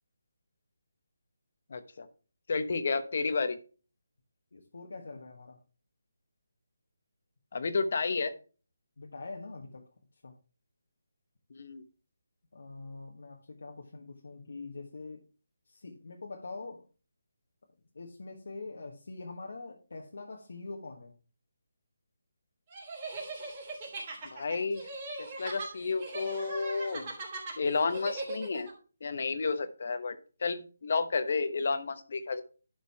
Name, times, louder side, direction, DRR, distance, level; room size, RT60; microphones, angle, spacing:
voice 1, 1.7-2.1 2.5-3.6 7.5-8.3 11.5-11.8 24.3-24.8 25.4-27.1 27.6-28.7 29.0-30.1 30.4-32.4, left 4 dB, 55° left, 10 dB, 1.1 m, -31 dB
voice 2, 4.5-5.6 9.0-9.8 10.2-10.3 12.5-15.2 15.7-16.8 17.9-21.1, left 3 dB, 70° left, 1 dB, 1.4 m, -44 dB
sound 1, 22.7-28.7, right 2 dB, 30° right, 3.3 m, -40 dB
11.5 x 4.0 x 4.7 m, 0.36 s
figure-of-eight pair, 160°, 0 cm